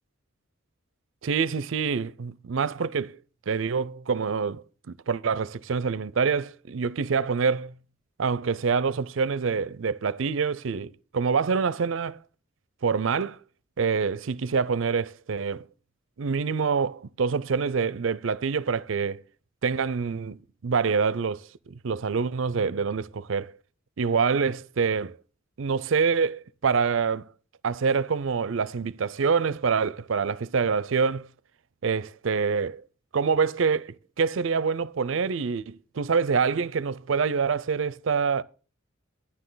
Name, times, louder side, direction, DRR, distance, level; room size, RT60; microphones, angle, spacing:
voice 1, 1.2-3.2 3.5-7.7 8.2-12.2 12.8-13.4 13.8-15.7 16.2-19.2 19.6-23.5 24.0-25.2 25.6-27.3 27.6-31.3 31.8-32.8 33.1-38.4, right 5 dB, 65° right, 0.5 m, -26 dB
11.5 x 10.0 x 3.9 m
head